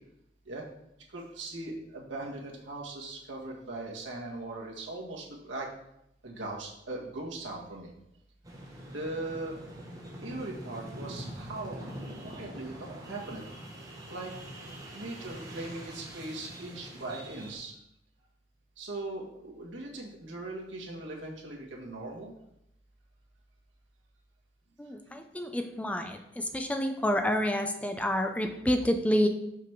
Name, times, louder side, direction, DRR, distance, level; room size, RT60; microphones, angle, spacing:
voice 1, 1.1-5.7 6.2-7.9 8.9-9.6 10.2-11.8 12.2-13.4 14.1-14.4 14.9-17.7 18.8-22.3 26.0-26.1, right 2 dB, 85° right, -2 dB, 1.7 m, -39 dB
sound 1, 8.4-17.6, right 1 dB, 20° right, 1.4 m, -44 dB
voice 2, 24.8-29.3, equal, 5° left, 5 dB, 0.5 m, -28 dB
5.8 x 5.7 x 4.6 m, 0.81 s
head